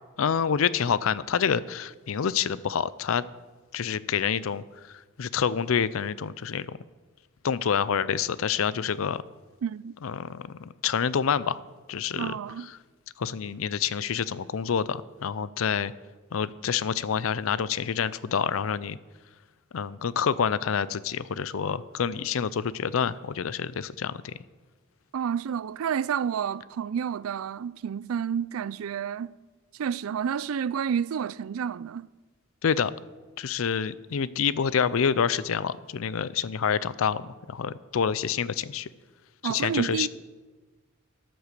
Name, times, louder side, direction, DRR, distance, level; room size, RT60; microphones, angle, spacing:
voice 1, 0.2-3.2 3.7-4.6 5.2-6.8 7.4-9.2 10.0-10.5 10.8-11.6 11.9-12.4 13.2-15.9 16.3-19.0 19.7-24.3 32.6-32.9 33.4-38.9 39.4-40.1, left 7 dB, 75° left, 0.5 m, -27 dB
voice 2, 9.6-9.9 12.2-12.7 25.1-29.3 29.8-32.1 39.4-40.1, right 7 dB, 85° right, 0.4 m, -30 dB
13.5 x 7.8 x 6.7 m
head